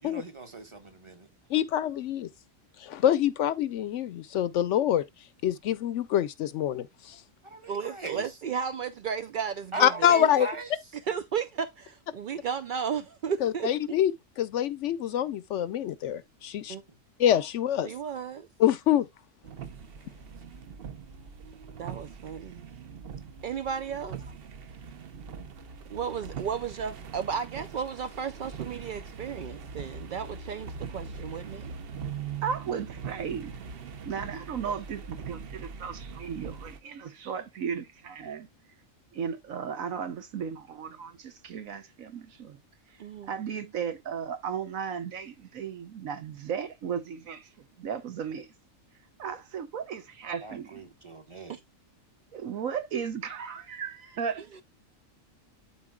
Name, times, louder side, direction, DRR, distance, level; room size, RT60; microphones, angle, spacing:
voice 1, 0.0-1.3 7.4-8.3 9.7-10.7 50.4-51.5, right 3 dB, 25° right, 1.1 m, -38 dB
voice 2, 1.5-2.3 2.8-5.0 5.4-7.2 9.8-10.5 13.4-14.1 14.4-16.7 17.2-17.9 18.6-19.1, left 10 dB, 70° left, 0.9 m, -25 dB
voice 3, 7.7-10.3 11.1-13.7 16.7-16.8 17.8-18.5 21.8-22.7 23.4-24.2 25.9-31.7 43.0-43.3 51.5-51.6 54.5-54.6, right 7 dB, 70° right, 0.4 m, -34 dB
sound 1, 19.4-36.8, right 6 dB, 55° right, 0.8 m, -41 dB
voice 4, 32.4-33.7 34.0-38.5 39.1-42.6 43.2-48.5 49.2-50.8 52.3-54.4, right 7 dB, 90° right, 1.5 m, -35 dB
12.0 x 4.1 x 2.2 m
omnidirectional pair, 1.4 m